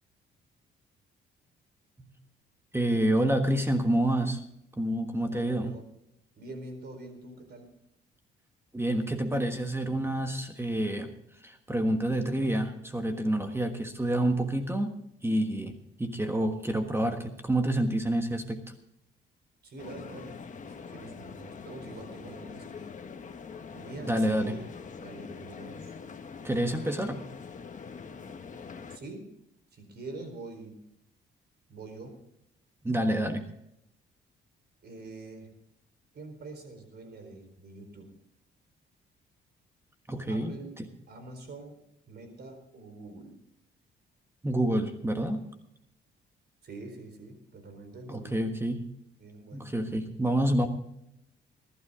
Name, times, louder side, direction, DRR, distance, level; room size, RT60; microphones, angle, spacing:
voice 1, 2.7-4.4 4.8-5.7 8.7-11.1 11.4-14.9 15.2-18.6 24.1-24.6 26.4-27.2 32.8-33.4 40.1-40.9 44.4-45.4 48.1-48.9 49.5-50.7, right 1 dB, 10° right, 6 dB, 1.4 m, -28 dB
voice 2, 5.2-5.9 6.4-7.7 19.6-20.4 20.7-22.9 23.7-24.6 25.0-25.9 28.9-29.3 29.7-30.8 31.7-32.2 34.8-35.5 36.1-38.1 40.3-40.8 41.1-43.4 46.6-48.5 49.2-49.8, right 2 dB, 55° right, 6 dB, 4.3 m, -45 dB
sound 1, 19.8-29.0, left 5 dB, 40° left, 1.3 m, -44 dB
20.5 x 11.5 x 3.7 m, 0.78 s
cardioid pair, 90°, 20 cm